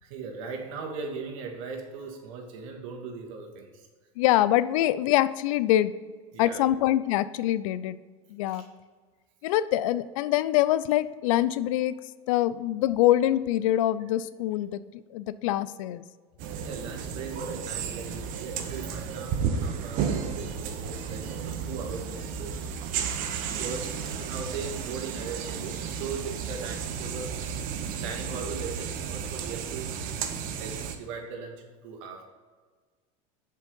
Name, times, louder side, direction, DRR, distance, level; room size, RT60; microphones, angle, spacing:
voice 1, 0.0-3.9 6.3-6.6 8.5-8.7 16.6-22.6 23.5-27.4 28.0-30.0 30.6-32.2, right 5 dB, 70° right, 3 dB, 1.9 m, -39 dB
voice 2, 4.2-5.9 6.4-8.0 8.3-8.6 9.4-12.0 12.3-14.8 15.1-16.0, left 13 dB, 75° left, 16 dB, 0.5 m, -24 dB
sound 1, 16.4-31.0, right 7 dB, 55° right, 1.0 m, -33 dB
7.4 x 5.5 x 5.3 m, 1.5 s
supercardioid pair, 110°, 17 cm